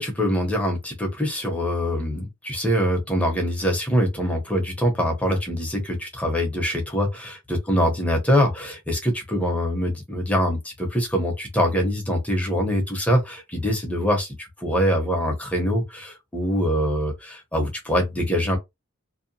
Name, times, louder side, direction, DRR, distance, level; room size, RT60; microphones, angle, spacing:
voice 1, 0.0-18.6, equal, 5° left, 0.8 m, -24 dB
2.8 x 2.1 x 2.6 m
head